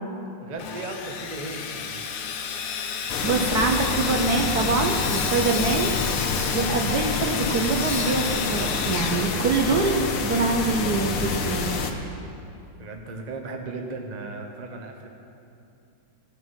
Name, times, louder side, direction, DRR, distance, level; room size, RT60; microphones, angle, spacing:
voice 1, 0.4-2.0 3.0-3.1 12.8-15.1, right 3 dB, 45° right, 2 dB, 0.5 m, -36 dB
Sawing, 0.6-10.1, left 6 dB, 70° left, 1.4 m, -32 dB
voice 2, 2.8-5.9 6.5-11.7, right 4 dB, 65° right, 2 dB, 1.0 m, -25 dB
sound 1, 3.1-11.9, left 5 dB, 85° left, 1.8 m, -27 dB
17.0 x 6.0 x 5.6 m, 2.6 s
omnidirectional pair, 2.3 m